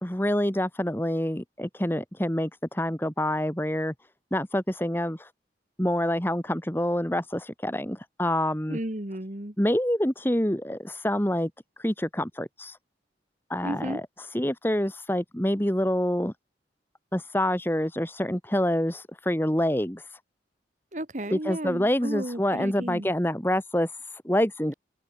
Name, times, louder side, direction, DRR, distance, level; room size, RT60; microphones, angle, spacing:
voice 1, 0.0-3.9 4.3-5.3 5.8-8.8 9.6-11.5 11.8-12.8 13.5-16.3 17.1-20.2 21.3-24.7, left 1 dB, 10° left, 1.8 m, -27 dB
voice 2, 8.7-9.5 13.6-14.0 20.9-23.1, right 1 dB, 45° right, 2.0 m, -33 dB
open air
head